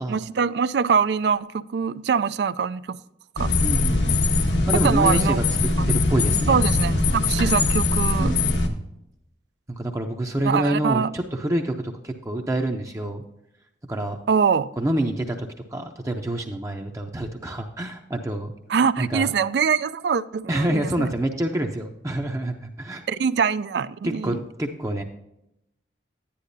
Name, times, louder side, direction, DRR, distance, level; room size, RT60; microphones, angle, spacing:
voice 1, 0.0-3.0 3.4-3.5 4.8-5.4 6.5-8.3 10.4-11.1 14.3-14.7 18.7-21.1 23.1-24.4, right 6 dB, 70° right, 0.3 m, -23 dB
sound 1, 3.4-8.7, left 3 dB, 85° left, 1.3 m, -21 dB
voice 2, 3.6-4.4 4.7-5.4 5.9-6.6 8.2-8.8 9.7-13.2 13.9-14.2 14.8-18.5 19.0-19.3 20.5-23.0 24.0-25.0, right 1 dB, 15° right, 0.6 m, -27 dB
10.5 x 10.0 x 2.6 m
head